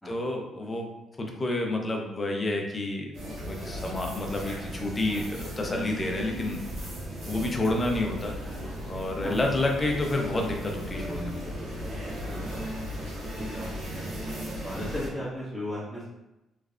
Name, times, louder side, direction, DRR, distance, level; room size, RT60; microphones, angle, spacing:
voice 1, 0.0-0.9 1.2-3.1 3.4-6.9 7.3-8.3 8.9-11.4 14.8-14.9, left 2 dB, 30° left, 1 dB, 0.6 m, -29 dB
sound 1, 3.1-15.1, equal, 80° right, 1.3 m, -36 dB
voice 2, 12.9-13.7 13.9-14.1 14.6-16.0, left 1 dB, ahead, -13 dB, 1.3 m, -36 dB
3.2 x 3.2 x 2.5 m, 0.96 s
cardioid pair, 90°, 0 cm